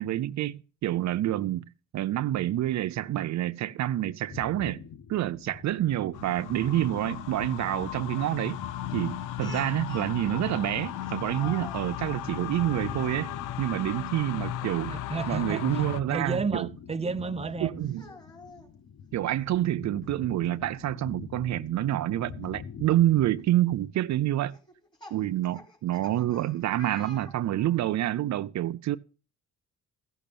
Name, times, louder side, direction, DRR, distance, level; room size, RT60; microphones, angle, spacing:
voice 1, 0.0-1.6 1.9-4.8 5.1-8.6 8.9-14.9 15.3-16.7 17.6-18.0 19.1-24.6 25.1-29.0, right 13 dB, 65° right, 0.6 m, -28 dB
sound 1, 4.3-24.0, left 7 dB, 55° left, 0.9 m, -44 dB
sound 2, 6.1-16.0, left 13 dB, 85° left, 0.6 m, -36 dB
Speech, 9.4-10.2 11.0-12.0 12.9-13.2 14.5-14.7 15.2-15.3 16.9-17.0 17.8-18.7 20.0-20.1 20.5-20.6 22.4-22.5 23.2-23.4 24.5-27.8, left 1 dB, 15° left, 4.3 m, -48 dB
voice 2, 14.9-15.8 16.1-17.7, right 4 dB, 20° right, 0.8 m, -32 dB
15.0 x 6.1 x 6.8 m
cardioid pair, 90°, 30 cm